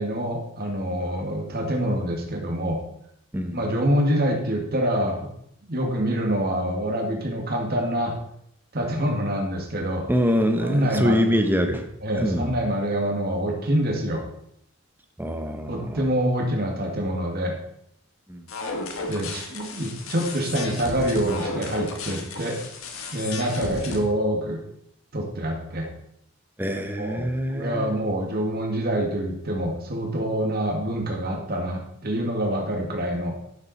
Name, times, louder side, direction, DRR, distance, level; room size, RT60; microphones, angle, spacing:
voice 1, 0.0-2.8 3.5-5.3 5.7-8.2 8.7-10.1 10.6-11.5 12.0-14.2 15.7-17.6 19.1-22.6 23.1-24.6 25.1-25.9 27.0-33.3, right 1 dB, 45° right, 1 dB, 1.9 m, -26 dB
voice 2, 10.1-11.9 12.2-12.5 15.2-16.1 18.3-18.5 26.6-27.9, equal, 10° right, 6 dB, 0.9 m, -24 dB
sound 1, 18.5-24.0, left 3 dB, 70° left, 1.5 m, -34 dB
10.5 x 7.5 x 4.1 m, 0.72 s
head